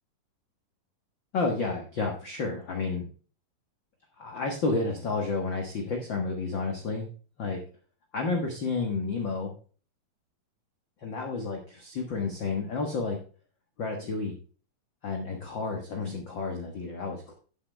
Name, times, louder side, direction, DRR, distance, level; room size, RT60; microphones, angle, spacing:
voice 1, 1.3-3.0 4.2-7.1 7.4-7.6 8.1-9.5 11.0-13.2 13.8-14.3 15.0-17.3, left 3 dB, 50° left, 2 dB, 1.5 m, -31 dB
11.0 x 8.1 x 3.3 m, 0.39 s
omnidirectional pair, 4.0 m